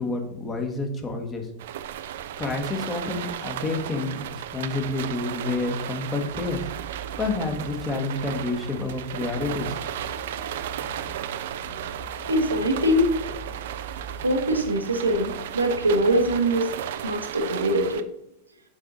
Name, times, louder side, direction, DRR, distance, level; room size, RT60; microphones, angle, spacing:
voice 1, 0.0-1.5 2.4-6.6 7.2-9.8, left 3 dB, 20° left, 4 dB, 1.3 m, -29 dB
sound 1, 1.6-18.0, right 11 dB, 55° right, 0.4 m, -35 dB
sound 2, 6.3-16.4, right 2 dB, 40° left, 1.4 m, -42 dB
voice 2, 12.3-13.1 14.2-16.7 17.0-18.0, right 1 dB, 80° right, 3 dB, 1.1 m, -23 dB
7.4 x 4.9 x 4.0 m, 0.80 s
figure-of-eight pair, 90°, 0 cm